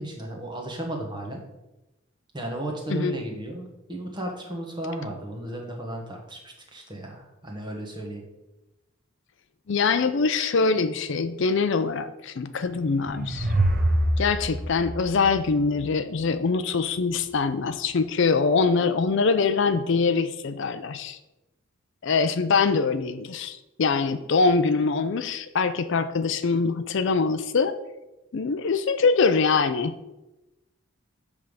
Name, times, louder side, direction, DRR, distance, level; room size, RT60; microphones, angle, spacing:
voice 1, 0.0-1.4 2.3-8.2, right 1 dB, 20° right, 0 dB, 1.3 m, -34 dB
voice 2, 9.7-13.5 14.2-21.2 22.0-27.8 28.3-29.9, left 4 dB, 55° left, 10 dB, 0.4 m, -23 dB
sound 1, 12.6-16.1, right 1 dB, 40° right, 1.0 m, -26 dB
7.9 x 3.5 x 6.4 m, 0.97 s
head